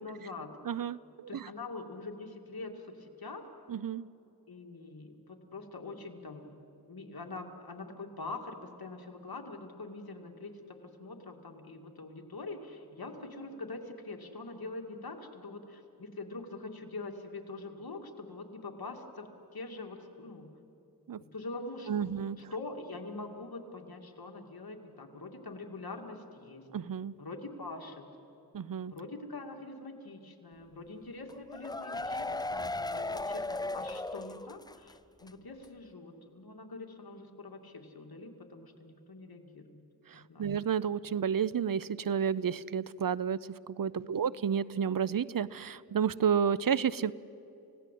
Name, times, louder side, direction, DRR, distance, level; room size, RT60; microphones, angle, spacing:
voice 1, 0.0-0.5 1.3-3.4 4.5-6.6 6.9-20.5 21.2-22.1 22.5-26.7 27.2-28.1 28.9-39.8 40.1-40.6 44.0-44.2, left 3 dB, 70° left, 3 dB, 2.5 m, -44 dB
voice 2, 0.6-1.5 3.7-4.1 21.1-21.2 21.9-22.4 26.7-27.2 28.5-28.9 40.1-47.1, right 7 dB, 60° right, 19 dB, 0.6 m, -31 dB
sound 1, 31.3-34.9 35.2-35.3 35.6-35.7, left 2 dB, 10° left, 0.4 m, -36 dB
29.0 x 17.0 x 8.4 m, 2.8 s
wide cardioid pair, 50°, 38 cm